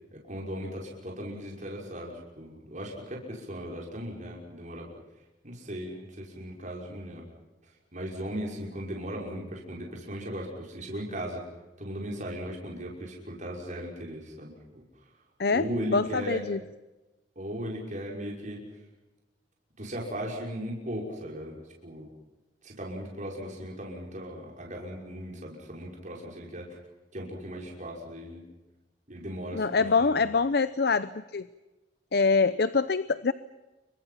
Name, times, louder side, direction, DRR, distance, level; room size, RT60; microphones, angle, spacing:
voice 1, 0.1-4.9 5.4-7.2 7.9-11.5 11.8-14.8 15.5-16.4 17.4-18.7 19.8-22.1 22.6-26.8 27.1-28.5 29.1-30.3, equal, 45° right, -2 dB, 5.9 m, -37 dB
voice 2, 15.4-16.6 29.5-31.5 32.1-33.3, left 4 dB, 65° left, 14 dB, 0.7 m, -25 dB
29.0 x 24.0 x 5.9 m, 1.1 s
head